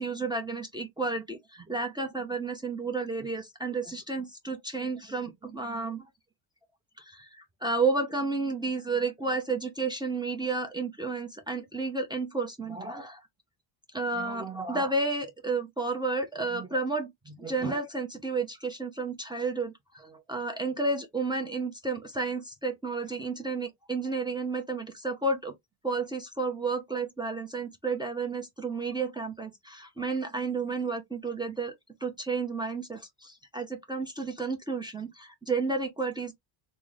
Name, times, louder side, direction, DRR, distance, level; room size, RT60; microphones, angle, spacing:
voice 1, 0.0-6.1 7.0-13.2 13.9-25.5 25.8-31.7 32.0-36.3, right 3 dB, 10° right, 0.6 m, -32 dB
3.2 x 2.0 x 3.8 m
cardioid pair, 130°, 49 cm